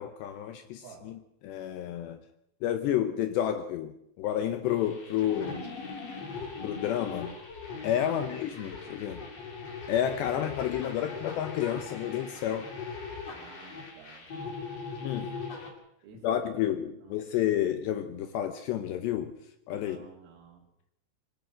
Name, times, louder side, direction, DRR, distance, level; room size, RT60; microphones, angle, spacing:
voice 1, 0.0-2.2 2.6-5.7 6.6-7.4 7.8-9.2 9.9-12.7 15.0-15.4 16.2-19.3 19.7-20.1, left 10 dB, 80° left, 2.6 m, -30 dB
voice 2, 0.8-1.2 8.1-8.4 10.3-10.4 13.3-14.3 16.0-17.2 19.7-20.7, right 6 dB, 90° right, 6.3 m, -52 dB
sound 1, 4.7-15.7, left 4 dB, 35° left, 3.4 m, -40 dB
24.5 x 17.0 x 6.3 m
omnidirectional pair, 6.0 m